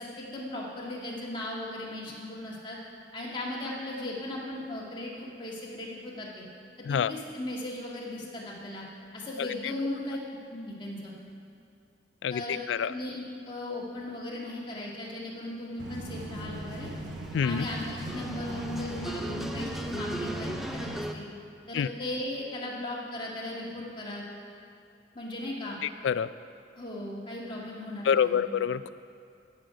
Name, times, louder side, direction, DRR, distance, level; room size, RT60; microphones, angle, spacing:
voice 1, 0.0-2.8 3.1-6.4 6.8-8.8 9.1-10.2 10.5-11.1 12.3-12.6 12.9-16.9 17.4-21.3 21.7-24.2 25.1-25.8 26.8-28.4, left 1 dB, 25° left, -5 dB, 2.0 m, -37 dB
voice 2, 12.2-12.9 17.3-17.7 21.7-21.9 25.8-26.3 28.0-28.9, left 7 dB, 80° left, 15 dB, 0.3 m, -27 dB
sound 1, 15.8-15.9 16.3-21.1, right 1 dB, ahead, 0.4 m, -39 dB
sound 2, 15.8-21.0, right 1 dB, 70° right, 1.0 m, -39 dB
15.5 x 6.3 x 5.1 m, 2.6 s
head